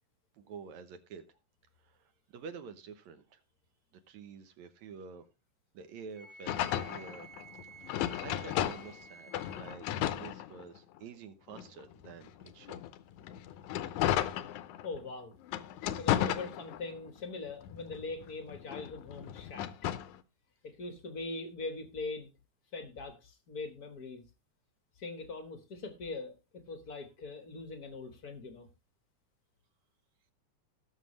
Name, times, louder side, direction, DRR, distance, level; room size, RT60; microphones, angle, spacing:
voice 1, 0.3-1.3 1.8-3.4 4.1-5.3 5.7-7.3 7.8-9.9 10.1-12.8, right 6 dB, 70° right, 2.1 m, -49 dB
Wind instrument woodwind instrument, 6.1-9.8, right 4 dB, 50° right, 0.8 m, -53 dB
sound 1, 6.5-9.0 9.3-11.0 11.5-15.0 15.4-17.1 17.5-20.2, left 12 dB, 80° left, 2.1 m, -34 dB
voice 2, 14.8-15.4 16.0-19.7 20.6-22.3 22.7-24.2 25.0-28.7, left 3 dB, 50° left, 1.2 m, -42 dB
18.5 x 6.6 x 3.2 m
omnidirectional pair, 3.6 m